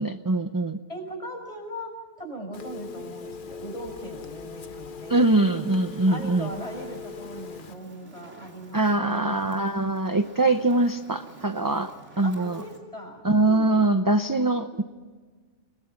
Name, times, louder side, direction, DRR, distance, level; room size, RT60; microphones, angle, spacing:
voice 1, 0.0-0.8 5.1-6.5 8.7-12.6 13.2-14.8, right 2 dB, 20° right, 8 dB, 0.6 m, -23 dB
voice 2, 0.9-5.4 6.0-9.5 12.2-13.9, right 1 dB, 30° left, 0 dB, 6.3 m, -39 dB
Telephone, 2.5-7.7, left 5 dB, 50° left, 1.0 m, -40 dB
Fire, 5.7-12.8, right 2 dB, 75° right, 3.2 m, -50 dB
29.5 x 20.0 x 6.0 m, 1.5 s
omnidirectional pair, 1.2 m